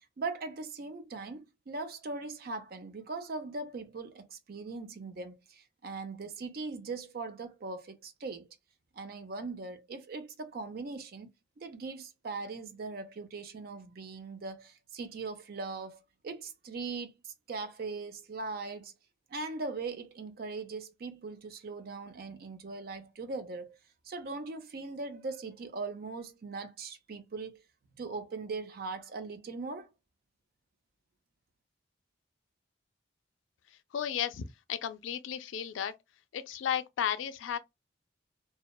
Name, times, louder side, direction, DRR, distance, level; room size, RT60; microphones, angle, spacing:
voice 1, 0.2-8.5 8.9-18.9 19.3-23.8 24.0-27.6 28.0-29.9, right 3 dB, 50° right, 0.4 m, -40 dB
voice 2, 33.7-34.4 34.7-35.9 36.3-37.6, left 9 dB, 75° left, 0.3 m, -34 dB
2.7 x 2.1 x 2.2 m
head